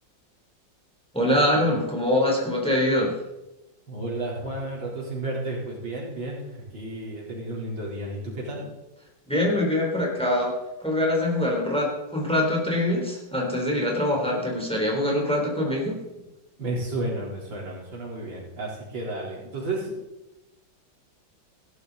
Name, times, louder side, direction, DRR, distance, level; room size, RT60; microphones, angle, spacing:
voice 1, 1.1-3.1 9.3-10.5 10.8-16.0, left 1 dB, 5° left, -2 dB, 3.6 m, -24 dB
voice 2, 3.9-8.7 16.6-19.9, right 2 dB, 85° right, -4 dB, 4.7 m, -32 dB
16.0 x 12.5 x 4.1 m, 0.98 s
omnidirectional pair, 2.0 m